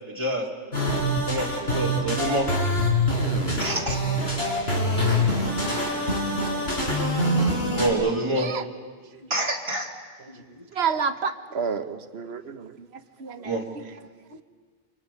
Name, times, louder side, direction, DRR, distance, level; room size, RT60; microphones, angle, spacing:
voice 1, 0.1-0.5 1.3-2.5 3.6-4.0 7.7-8.5 9.3-9.9 13.4-13.6, right 1 dB, 25° right, -2 dB, 2.3 m, -26 dB
sound 1, 0.7-7.9, left 1 dB, 80° left, 4.2 m, -24 dB
voice 2, 0.8-1.2 2.0-2.1 8.3-8.6 10.7-12.9 13.2-13.8 14.3-14.4, right 6 dB, 90° right, 10 dB, 1.3 m, -30 dB
voice 3, 5.6-7.0 10.3-10.6 12.2-12.3 13.4-13.5 14.3-14.4, left 1 dB, 40° left, 5 dB, 1.6 m, -47 dB
28.5 x 25.5 x 5.5 m, 1.5 s
omnidirectional pair, 1.0 m